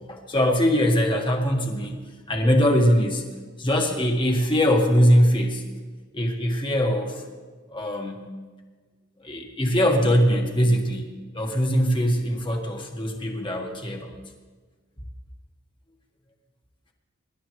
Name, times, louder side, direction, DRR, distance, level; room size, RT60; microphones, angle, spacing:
voice 1, 0.0-2.0 2.3-3.2 3.6-5.6 6.1-7.2 7.7-8.3 9.2-11.1 11.3-14.1, equal, 25° left, 2 dB, 1.7 m, -22 dB
25.0 x 11.5 x 3.2 m, 1.4 s
head